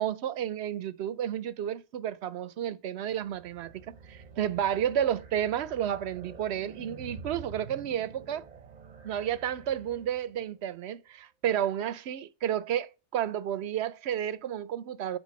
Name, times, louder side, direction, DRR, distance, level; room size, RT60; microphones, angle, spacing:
voice 1, 0.0-8.4 9.0-15.2, right 10 dB, 70° right, 0.9 m, -31 dB
sound 1, 3.1-10.5, right 5 dB, 40° right, 0.8 m, -48 dB
9.4 x 4.2 x 5.2 m
omnidirectional pair, 1.2 m